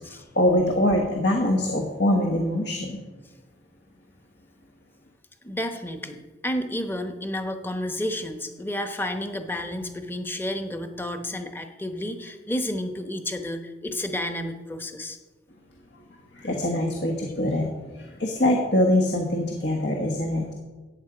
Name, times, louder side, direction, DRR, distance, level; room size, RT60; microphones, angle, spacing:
voice 1, 0.0-3.0 15.9-16.0 16.3-20.5, left 1 dB, 70° left, 1 dB, 1.4 m, -24 dB
voice 2, 5.4-15.2, left 1 dB, 10° left, 6 dB, 0.9 m, -31 dB
14.5 x 9.1 x 5.0 m, 1.3 s
head